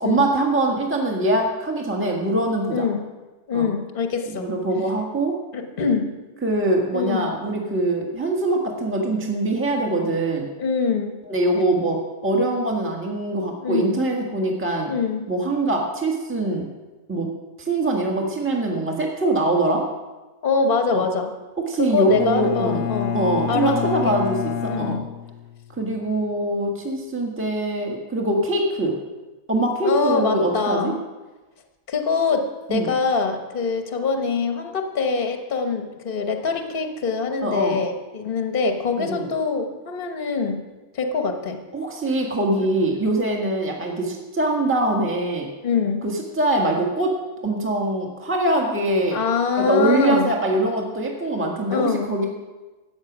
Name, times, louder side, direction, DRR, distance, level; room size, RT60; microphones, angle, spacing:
voice 1, 0.0-2.9 3.5-3.7 4.3-5.3 6.4-10.5 11.2-14.9 15.3-16.7 17.1-17.3 17.6-19.8 20.8-21.0 21.7-22.8 23.1-25.0 25.8-29.0 29.5-30.9 32.7-32.9 37.4-37.8 39.0-39.3 41.7-45.5 46.0-47.1 47.4-49.2 49.6-52.3, right 2 dB, 10° right, 0 dB, 1.5 m, -23 dB
voice 2, 2.7-3.0 3.5-4.5 5.5-6.1 6.9-7.3 10.6-11.2 13.6-14.0 14.9-15.3 20.4-21.3 21.8-23.2 23.5-24.1 24.7-25.0 29.8-31.0 31.9-40.6 40.9-41.6 45.6-46.0 49.1-50.3 51.7-52.1, left 5 dB, 40° left, 5 dB, 1.2 m, -24 dB
Bowed string instrument, 22.1-25.9, left 9 dB, 85° left, 1.2 m, -28 dB
14.0 x 8.7 x 6.1 m, 1.2 s
omnidirectional pair, 1.6 m